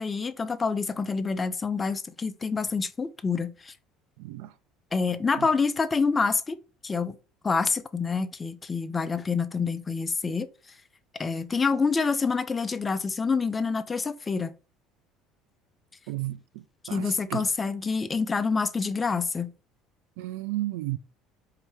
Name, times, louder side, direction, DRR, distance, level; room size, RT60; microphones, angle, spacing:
voice 1, 0.0-3.7 4.9-6.6 6.8-7.1 7.4-10.5 11.2-14.5 16.8-19.5, left 4 dB, 20° left, 0.4 m, -27 dB
voice 2, 4.2-4.5 5.4-5.5 16.1-17.5 20.2-21.0, right 17 dB, 85° right, 0.4 m, -33 dB
4.7 x 2.7 x 3.3 m
cardioid pair, 125°, 0 cm